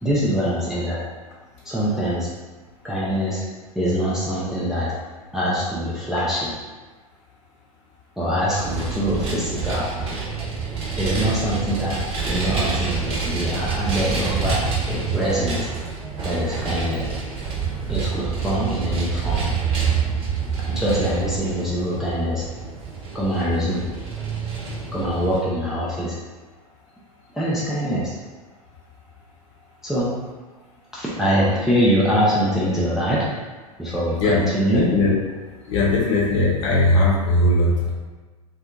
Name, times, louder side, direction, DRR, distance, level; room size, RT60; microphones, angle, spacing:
voice 1, 0.0-1.0 1.7-2.3 2.8-3.4 3.8-4.9 5.3-6.5 8.2-9.9 11.0-12.0 12.3-14.6 14.9-15.7 16.2-17.1 17.9-19.5 20.6-22.4 23.1-23.8 24.9-26.2 27.3-28.1 29.8-30.1 30.9-33.3 33.8-34.9, equal, ahead, -8 dB, 0.4 m, -23 dB
Vehicle, 8.5-25.4, right 5 dB, 35° right, 0.9 m, -27 dB
voice 2, 34.7-35.1 35.7-37.9, left 2 dB, 50° left, -3 dB, 0.7 m, -19 dB
2.7 x 2.4 x 2.3 m, 1.3 s
figure-of-eight pair, 90°, 19 cm